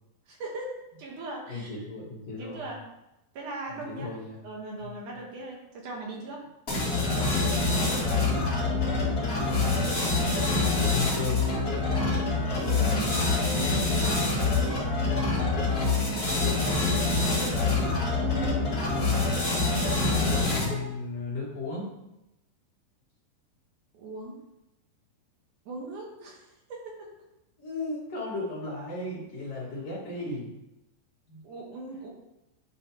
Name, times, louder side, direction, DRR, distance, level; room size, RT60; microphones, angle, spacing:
voice 1, 0.3-1.7 2.3-2.8 3.3-4.1 4.4-6.5 12.9-13.8 16.2-16.6 18.2-19.0 23.9-24.4 25.7-26.4 26.7-27.1 31.4-32.1, right 2 dB, 65° right, -2 dB, 2.6 m, -39 dB
voice 2, 1.5-2.6 3.7-4.4 4.8-4.9 7.5-8.4 9.3-9.8 10.9-11.5 20.5-21.9 27.6-30.5 31.3-31.4, left 3 dB, 50° left, -6 dB, 2.7 m, -35 dB
sound 1, 6.7-20.9, left 3 dB, 30° left, 2.2 m, -26 dB
11.0 x 5.0 x 2.9 m, 0.92 s
omnidirectional pair, 4.0 m